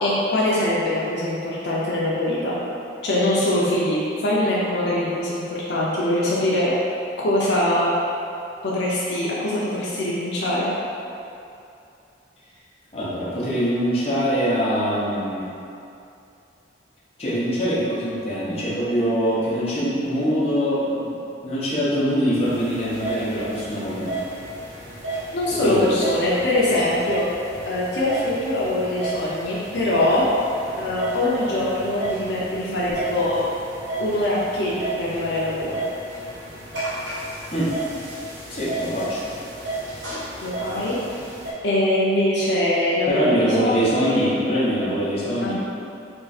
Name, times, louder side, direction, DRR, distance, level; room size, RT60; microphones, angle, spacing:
voice 1, 0.0-2.5 3.0-6.7 7.2-7.9 8.6-10.7 25.3-27.2 27.7-30.2 30.8-33.4 34.0-35.8 40.4-41.0 41.6-44.1 45.4-45.5, left 1 dB, 65° left, -7 dB, 0.6 m, -23 dB
voice 2, 12.9-15.5 17.2-21.1 21.4-24.1 25.5-25.9 37.5-37.7 38.5-39.3 43.1-45.5, equal, 30° left, -9 dB, 0.8 m, -23 dB
sound 1, 22.4-41.5, right 2 dB, 85° right, 1.1 m, -33 dB
3.6 x 2.4 x 4.1 m, 2.6 s
head